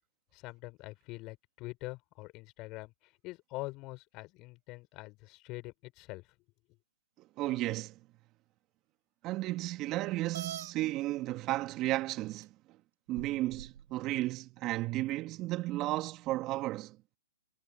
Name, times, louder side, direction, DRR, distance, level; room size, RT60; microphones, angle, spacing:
voice 1, 0.3-6.2, left 22 dB, 35° left, 6.9 m, -44 dB
voice 2, 7.4-8.0 9.2-12.5 13.1-17.0, right 17 dB, 30° right, 2.3 m, -33 dB
sound 1, 10.3-10.7 11.7-11.8 12.4-12.5 13.2-13.8, right 9 dB, 65° right, 8.0 m, -42 dB
hypercardioid pair, 130°, 0 cm